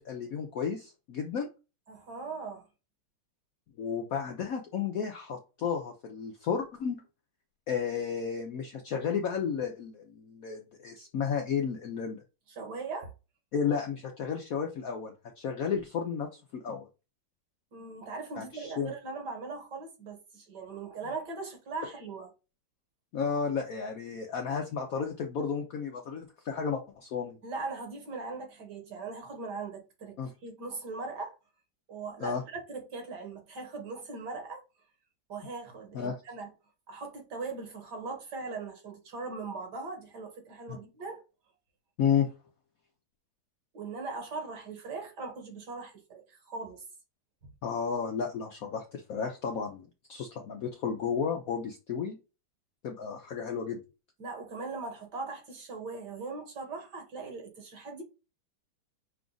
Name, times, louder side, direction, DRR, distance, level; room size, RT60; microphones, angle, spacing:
voice 1, 0.0-1.5 3.8-7.0 7.7-12.2 13.5-16.9 18.4-18.9 23.1-27.4 30.2-30.3 32.2-32.4 35.9-36.2 40.7-40.8 42.0-42.3 47.6-52.2 52.8-53.8, left 6 dB, 70° left, 0.8 m, -32 dB
voice 2, 1.9-2.7 12.5-13.1 17.7-22.3 27.4-30.2 30.4-31.4 31.9-34.6 35.3-36.5 36.9-41.2 43.7-46.8 54.2-58.0, right 4 dB, 60° right, 1.8 m, -40 dB
5.8 x 2.4 x 3.8 m
omnidirectional pair, 2.1 m